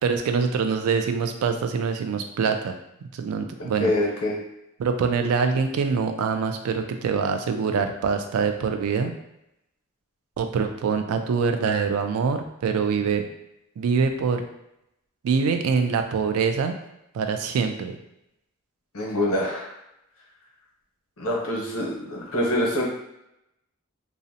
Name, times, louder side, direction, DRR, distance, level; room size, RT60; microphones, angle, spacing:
voice 1, 0.0-2.7 3.0-3.9 4.8-9.1 10.4-13.2 13.8-14.4 15.2-16.7 17.1-18.0, right 5 dB, 85° right, 6 dB, 0.3 m, -24 dB
voice 2, 3.8-4.4 18.9-19.7 21.2-22.9, left 1 dB, 80° left, -2 dB, 0.8 m, -25 dB
2.5 x 2.0 x 2.6 m, 0.84 s
head